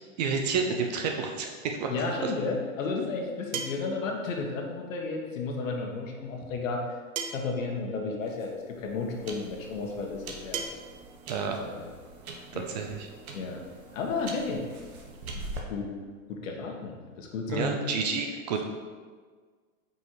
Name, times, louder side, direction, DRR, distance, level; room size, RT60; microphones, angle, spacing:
voice 1, 0.2-1.9 2.2-2.3 11.3-11.6 12.5-13.0 17.5-18.6, right 5 dB, 30° right, 3 dB, 0.4 m, -30 dB
sound 1, 1.8-1.9 3.5-4.0 5.5-5.6 7.2-7.6 8.8-8.9 10.5-10.7, right 6 dB, 65° right, 0.9 m, -34 dB
voice 2, 1.9-7.0 7.3-10.6 11.6-11.9 12.5-12.7 13.3-13.6 13.9-14.6 15.7-15.9 16.3-17.8, left 3 dB, 70° left, 1 dB, 1.4 m, -33 dB
sound 2, 8.2-15.6, right 2 dB, 85° right, 1.2 m, -44 dB
5.4 x 4.7 x 4.5 m, 1.5 s
hypercardioid pair, 145°, 41 cm